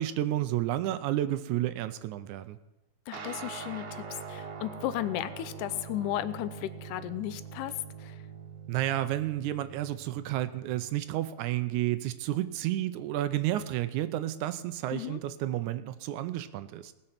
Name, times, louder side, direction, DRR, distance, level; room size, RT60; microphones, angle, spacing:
voice 1, 0.0-2.6 8.7-16.9, right 13 dB, 80° right, 12 dB, 1.9 m, -31 dB
voice 2, 3.1-7.7 8.0-8.2 14.9-15.2, left 13 dB, 85° left, 14 dB, 2.1 m, -35 dB
sound 1, 3.1-10.9, right 6 dB, 65° right, 2.1 m, -43 dB
18.5 x 6.6 x 5.7 m, 1.0 s
omnidirectional pair, 3.6 m